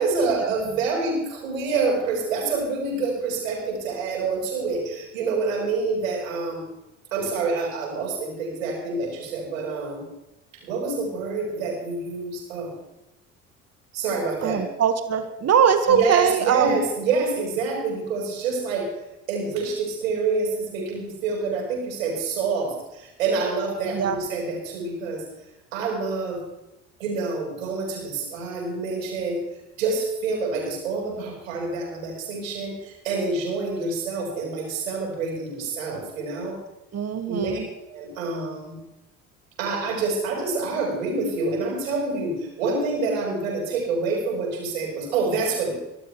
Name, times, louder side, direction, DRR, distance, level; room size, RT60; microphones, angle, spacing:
voice 1, 0.0-6.7 7.1-10.0 10.6-12.7 13.9-14.6 15.9-18.9 19.3-25.2 25.7-26.4 27.0-29.4 29.8-36.6 37.3-37.5 37.9-38.8 39.6-45.8, right 4 dB, 75° right, -1 dB, 5.7 m, -27 dB
voice 2, 14.4-16.8 23.9-24.2 36.9-37.7, right 7 dB, 40° right, 7 dB, 2.0 m, -22 dB
26.0 x 12.5 x 3.4 m, 0.95 s
figure-of-eight pair, 55°, 40 cm